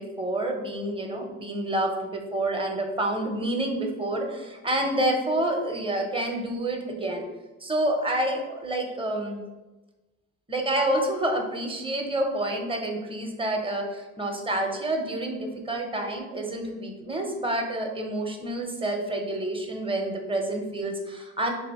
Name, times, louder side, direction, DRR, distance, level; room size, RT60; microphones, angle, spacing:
voice 1, 0.0-7.2 7.6-9.4 10.5-21.5, right 1 dB, 15° right, 3 dB, 0.7 m, -28 dB
3.0 x 2.7 x 4.1 m, 1.1 s
cardioid pair, 90°, 30 cm